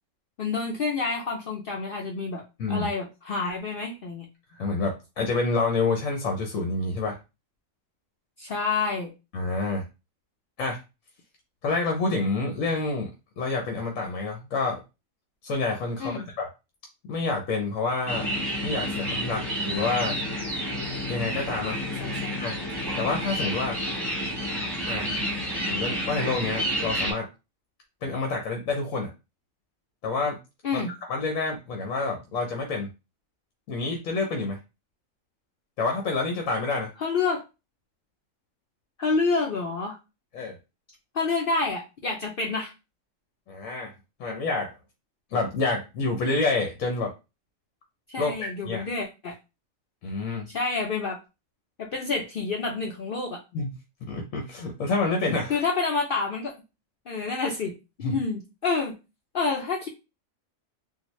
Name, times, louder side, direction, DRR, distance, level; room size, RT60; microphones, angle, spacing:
voice 1, 0.4-2.4 2.7-4.3 8.4-9.1 16.0-16.3 21.6-21.7 22.0-22.3 30.6-30.9 37.0-37.4 39.0-40.0 41.1-42.7 48.1-49.4 50.5-51.2 51.8-53.4 55.5-56.5 57.1-58.9 59.3-59.9, left 4 dB, 55° left, 0 dB, 0.6 m, -28 dB
voice 2, 4.5-7.2 9.3-9.8 10.6-10.8 11.6-13.1 13.4-14.8 15.4-16.5 17.1-18.3 18.6-20.2 21.1-21.8 22.4-22.5 23.0-23.8 24.9-25.1 25.7-27.3 28.0-29.1 30.0-30.4 30.7-30.8 31.1-32.9 33.7-34.6 35.8-36.9 40.3-40.6 43.5-43.9 44.2-44.7 45.3-47.1 48.2-48.9 50.0-50.5 53.5-53.7 54.0-55.6 58.0-58.1, left 3 dB, 75° left, 2 dB, 1.1 m, -28 dB
sound 1, 18.1-27.1, equal, ahead, 1.0 m, -30 dB
3.8 x 2.1 x 3.0 m, 0.27 s
omnidirectional pair, 1.4 m